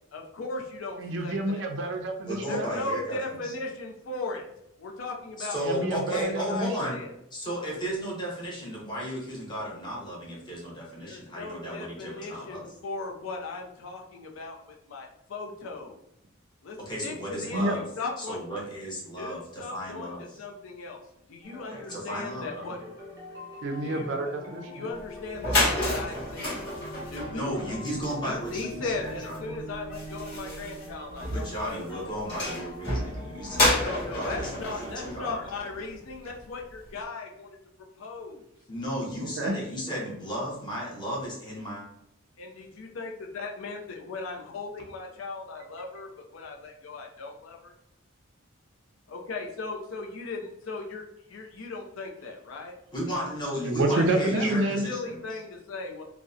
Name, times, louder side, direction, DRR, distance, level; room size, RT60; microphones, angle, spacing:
voice 1, 0.1-1.6 2.5-4.5 4.8-6.2 6.5-7.1 11.0-16.0 16.6-16.8 17.0-17.6 18.0-18.4 19.2-21.0 21.3-22.8 23.8-24.1 24.7-27.4 28.2-31.7 33.8-37.6 38.0-38.4 42.4-47.7 49.1-51.0 51.3-52.7 53.9-54.1 54.3-56.0, left 3 dB, 80° left, 1 dB, 0.4 m, -37 dB
voice 2, 1.0-2.7 5.6-6.9 17.4-17.8 23.6-24.8 39.2-39.6 53.6-54.9, right 1 dB, 60° right, 4 dB, 0.4 m, -28 dB
voice 3, 2.3-3.5 5.4-7.0 7.3-12.6 16.8-17.8 18.2-20.2 21.7-22.8 27.3-29.6 31.3-35.4 38.7-41.8 52.9-55.2, equal, 20° left, -4 dB, 0.7 m, -34 dB
sound 1, 21.4-35.9, equal, 15° right, 0.6 m, -44 dB
sound 2, 25.0-25.1 25.3-36.1, left 1 dB, 55° left, 1.2 m, -31 dB
2.6 x 2.0 x 2.3 m, 0.79 s
head